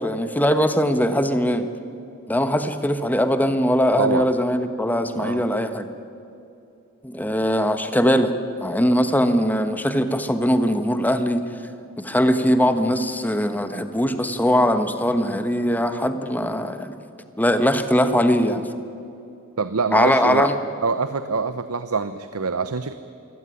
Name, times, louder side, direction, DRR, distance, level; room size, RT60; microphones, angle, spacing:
voice 1, 0.0-1.7 2.3-5.9 7.0-8.3 8.6-11.4 12.0-16.9 17.4-18.6 19.9-20.5, equal, 10° left, 9 dB, 1.2 m, -21 dB
voice 2, 4.0-4.3 5.2-5.5 19.6-20.5 20.8-22.9, right 4 dB, 90° right, 11 dB, 0.9 m, -25 dB
24.0 x 17.0 x 10.0 m, 2.7 s
head